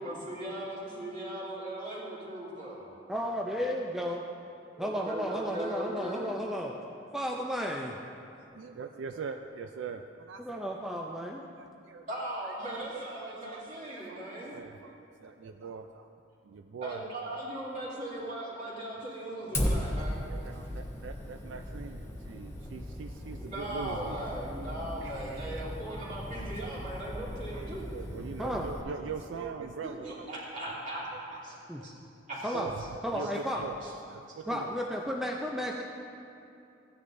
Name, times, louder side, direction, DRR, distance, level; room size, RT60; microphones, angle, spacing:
voice 1, 0.0-2.9 4.7-6.2 12.1-14.6 16.8-20.3 23.4-27.9 29.8-31.5 31.8-31.9 32.3-32.5, right 1 dB, 45° right, -7 dB, 2.7 m, -38 dB
voice 2, 3.1-4.2 4.8-6.8 7.1-7.9 10.4-11.4 28.4-28.7 31.7-31.8 32.4-32.8 33.0-33.7 34.5-35.8, equal, ahead, -1 dB, 0.4 m, -33 dB
voice 3, 8.6-10.6 11.1-11.2 11.6-12.1 12.7-16.1 16.4-17.4 20.2-24.2 25.0-26.6 27.5-30.4 31.1-31.9 32.5-32.8 33.1-33.8 34.1-34.7, right 5 dB, 80° right, 6 dB, 0.4 m, -43 dB
Fire, 19.5-28.8, left 1 dB, 15° left, 0.9 m, -37 dB
15.5 x 9.8 x 2.6 m, 2.7 s
head